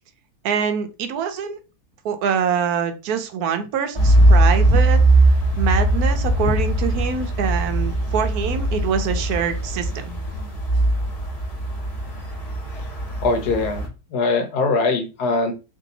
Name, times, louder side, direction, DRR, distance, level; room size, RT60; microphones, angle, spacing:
voice 1, 0.4-1.6 2.0-5.0 5.6-10.0, right 7 dB, 75° right, 8 dB, 1.1 m, -24 dB
sound 1, 4.0-13.9, right 1 dB, 25° left, 1.2 m, -20 dB
voice 2, 13.2-15.5, left 3 dB, 80° left, 5 dB, 1.4 m, -22 dB
3.2 x 2.7 x 3.9 m, 0.30 s
omnidirectional pair, 1.7 m